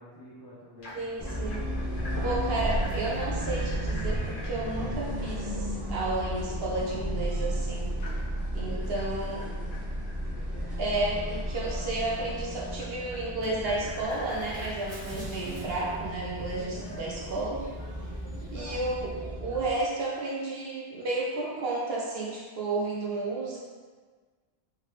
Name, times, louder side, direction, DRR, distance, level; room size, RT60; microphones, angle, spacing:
voice 1, 0.0-1.1 8.4-9.8, equal, 25° left, -8 dB, 0.5 m, -49 dB
sound 1, 0.8-15.2, left 1 dB, 50° left, 0.9 m, -47 dB
voice 2, 1.0-1.6 2.2-8.0 8.5-9.4 10.8-17.7 18.5-23.6, right 2 dB, 65° right, -3 dB, 0.8 m, -32 dB
sound 2, 1.2-19.7, right 1 dB, 20° right, 0.7 m, -34 dB
sound 3, 13.7-19.4, equal, 80° right, 1.7 m, -52 dB
3.6 x 2.9 x 3.2 m, 1.5 s
omnidirectional pair, 1.2 m